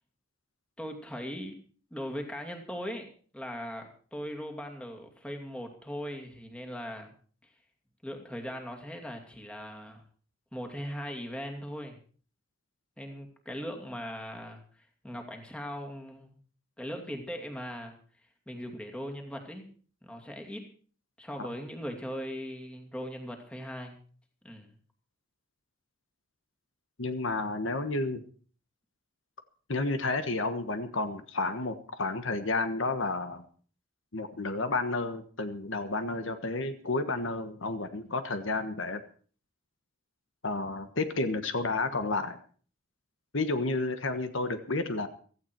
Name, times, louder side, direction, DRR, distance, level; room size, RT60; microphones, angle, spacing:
voice 1, 0.8-1.6 1.9-7.1 8.0-10.0 10.5-12.0 13.0-16.4 16.8-18.0 18.5-19.7 20.0-20.7 21.2-24.0 24.4-24.7, equal, 5° left, 2 dB, 2.5 m, -39 dB
voice 2, 27.0-28.2 29.7-33.4 34.1-39.0 40.4-42.4 43.3-45.1, left 3 dB, 65° left, 9 dB, 1.4 m, -31 dB
16.5 x 15.0 x 4.6 m, 0.43 s
head